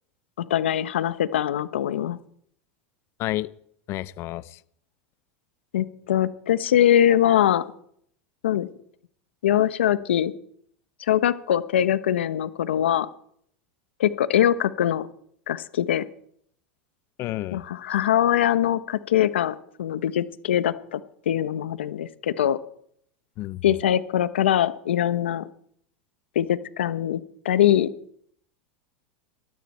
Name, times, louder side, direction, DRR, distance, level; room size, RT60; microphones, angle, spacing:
voice 1, 0.4-2.2 5.7-7.7 8.4-8.7 9.4-10.3 11.1-13.1 14.0-15.1 15.5-16.0 17.5-21.0 21.3-22.6 23.6-25.5 26.3-27.9, left 11 dB, 90° left, 15 dB, 1.1 m, -22 dB
voice 2, 3.2-3.5 3.9-4.6 17.2-17.6 23.4-23.6, left 16 dB, 50° left, 19 dB, 0.7 m, -30 dB
20.0 x 13.0 x 4.4 m, 0.66 s
hypercardioid pair, 110°, 6 cm